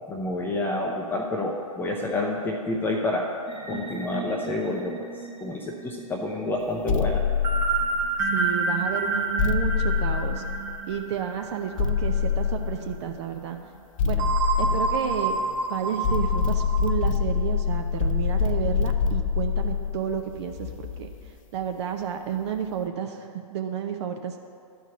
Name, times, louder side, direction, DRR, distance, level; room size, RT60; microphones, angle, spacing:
voice 1, 0.1-3.3 3.7-5.1 5.4-7.2, left 2 dB, 10° left, 0 dB, 0.6 m, -28 dB
sound 1, 3.5-12.4 12.7-12.9 14.2-16.9, right 4 dB, 25° right, 1.1 m, -30 dB
sound 2, 6.9-8.4 9.4-11.0 11.8-13.1 14.0-15.6 16.0-21.3, left 7 dB, 60° left, 0.6 m, -26 dB
voice 2, 8.2-10.4 10.9-13.6 14.0-14.3 14.6-15.4 15.7-21.1 21.5-24.4, right 8 dB, 45° right, 5 dB, 0.7 m, -31 dB
11.0 x 4.6 x 6.7 m, 2.3 s
figure-of-eight pair, 115°, 19 cm